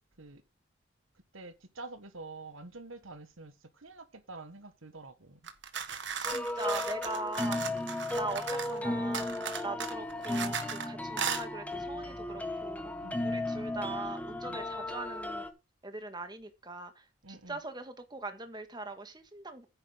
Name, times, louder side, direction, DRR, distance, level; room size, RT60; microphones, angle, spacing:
voice 1, 1.3-5.4 7.6-7.9 13.0-13.4 14.4-14.6 17.2-17.6, right 3 dB, 80° right, 1.5 m, -47 dB
sound 1, 5.4-8.8 9.1-10.9 11.2-11.4, right 7 dB, 60° right, 1.6 m, -37 dB
voice 2, 6.1-7.6 8.1-9.3 9.6-12.9 13.2-15.4 15.8-19.7, right 3 dB, 20° right, 1.6 m, -41 dB
sound 2, 6.2-15.5, left 2 dB, 5° left, 1.0 m, -35 dB
9.9 x 9.2 x 3.8 m
head